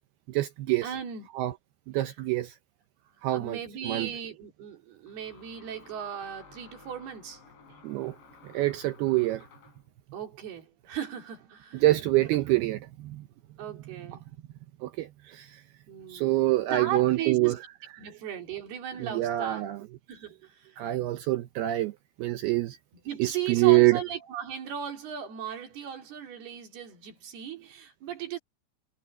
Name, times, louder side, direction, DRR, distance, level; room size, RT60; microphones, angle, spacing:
voice 1, 0.3-0.9 1.3-1.5 1.9-2.6 3.2-3.6 3.8-4.1 7.8-8.2 8.4-9.4 11.8-13.3 14.8-15.6 16.1-17.6 19.0-19.9 20.8-22.8 23.2-24.0, right 17 dB, 80° right, 2.3 m, -26 dB
voice 2, 0.8-1.3 3.3-7.4 10.1-11.8 13.6-14.2 15.9-17.5 18.0-20.8 23.0-28.4, right 8 dB, 60° right, 5.2 m, -37 dB
sound 1, 3.1-3.2 5.1-9.9, left 5 dB, 65° left, 9.1 m, -54 dB
omnidirectional pair, 5.4 m